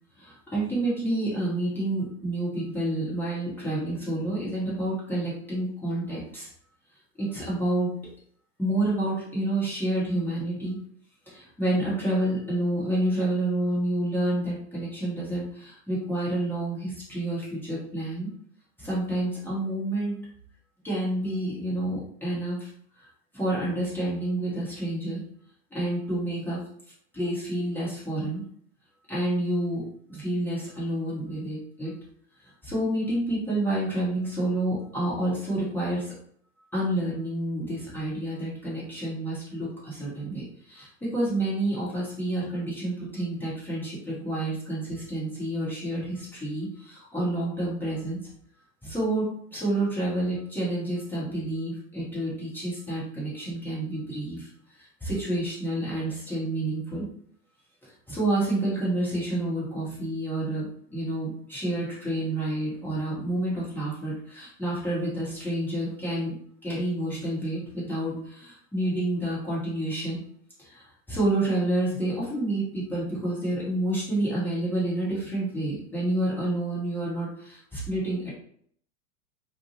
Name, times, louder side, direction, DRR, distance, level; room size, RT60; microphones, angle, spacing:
voice 1, 0.2-6.5 7.2-8.0 8.6-10.8 11.3-18.3 18.8-20.2 20.8-22.7 23.0-23.1 23.3-25.2 25.7-26.6 27.1-28.4 29.1-29.8 30.1-31.9 32.6-36.1 36.7-48.2 48.8-54.5 55.0-57.1 58.1-66.3 66.6-70.2 70.6-78.3, right 1 dB, 5° left, -8 dB, 0.6 m, -29 dB
2.4 x 2.0 x 2.5 m, 0.64 s
figure-of-eight pair, 100°, 45 cm